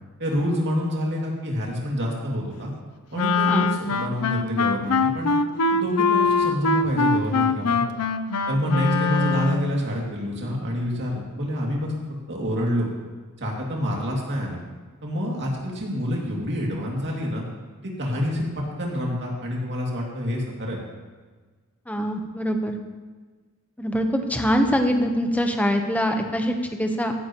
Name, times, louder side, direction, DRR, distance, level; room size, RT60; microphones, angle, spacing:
voice 1, 0.2-2.7 3.1-5.3 5.7-7.8 8.5-11.9 12.3-12.9 13.4-14.6 15.0-17.4 17.8-18.4 18.8-20.8, equal, 55° right, -2 dB, 2.5 m, -27 dB
Wind instrument woodwind instrument, 3.1-9.8, left 4 dB, 85° left, 0.6 m, -23 dB
voice 2, 21.9-22.7 23.8-27.1, equal, 5° left, 4 dB, 1.0 m, -23 dB
15.0 x 11.0 x 3.0 m, 1.4 s
head